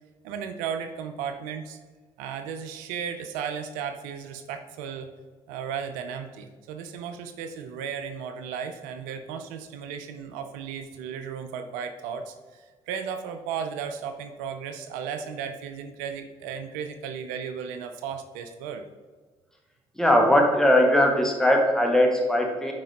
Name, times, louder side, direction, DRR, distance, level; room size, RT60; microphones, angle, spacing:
voice 1, 0.2-1.8 2.2-5.1 5.5-18.8, right 7 dB, 80° right, 7 dB, 0.5 m, -35 dB
voice 2, 20.0-22.7, left 1 dB, 5° left, 0 dB, 1.8 m, -20 dB
7.5 x 5.1 x 2.9 m, 1.4 s
hypercardioid pair, 50°, 13 cm